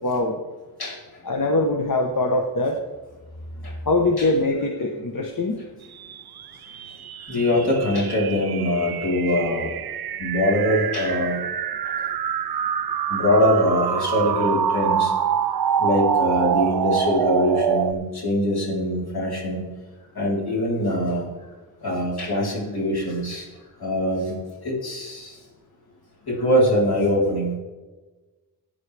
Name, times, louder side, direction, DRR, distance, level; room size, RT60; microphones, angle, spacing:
voice 1, 0.0-0.4 1.2-2.8 3.8-5.6, left 2 dB, 60° left, 3 dB, 1.1 m, -22 dB
sound 1, 6.0-17.9, right 8 dB, 75° right, 0.6 m, -26 dB
voice 2, 7.3-9.7 10.2-11.4 13.1-15.1 15.8-19.6 20.2-21.3 21.8-23.4 23.8-24.4 24.6-25.3 26.3-27.5, equal, 75° left, -4 dB, 3.9 m, -23 dB
16.5 x 9.3 x 3.4 m, 1.3 s
wide cardioid pair, 110°, 37 cm